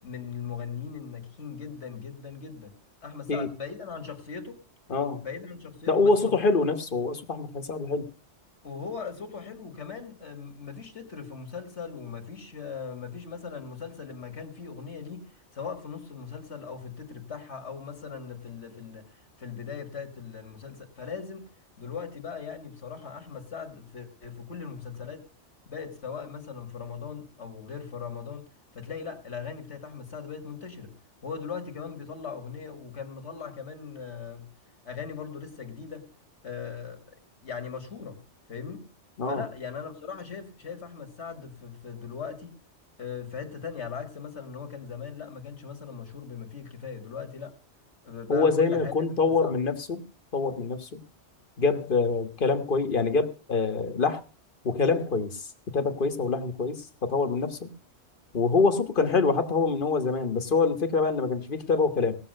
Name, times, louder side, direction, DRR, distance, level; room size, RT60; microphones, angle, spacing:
voice 1, 0.0-2.7 3.0-4.6 5.2-6.4 8.6-21.5 21.8-25.3 25.7-30.9 31.2-34.5 34.8-36.1 36.4-37.2 37.4-38.2 38.5-38.9 39.3-42.6 43.0-47.6 48.0-48.9 49.3-49.5, left 6 dB, 70° left, 2.0 m, -39 dB
voice 2, 4.9-5.2 5.9-8.1 39.2-39.4 48.3-50.0 50.3-51.0 51.6-54.2 54.6-55.5 55.7-57.7 58.3-62.2, left 4 dB, 50° left, 1.5 m, -25 dB
18.0 x 7.1 x 6.5 m
omnidirectional pair, 1.2 m